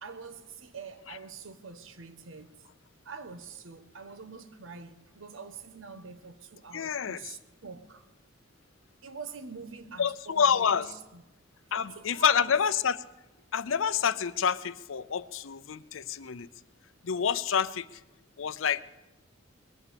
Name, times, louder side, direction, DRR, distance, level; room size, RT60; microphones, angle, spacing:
voice 1, 0.0-2.7 3.0-8.1 9.0-11.2 11.7-12.6 17.6-17.7, right 5 dB, 85° right, 1.1 m, -45 dB
voice 2, 6.7-7.3 10.0-10.9 11.7-13.0 13.5-16.5 17.0-17.9 18.4-18.8, left 7 dB, 85° left, 0.6 m, -28 dB
21.0 x 8.9 x 6.9 m
head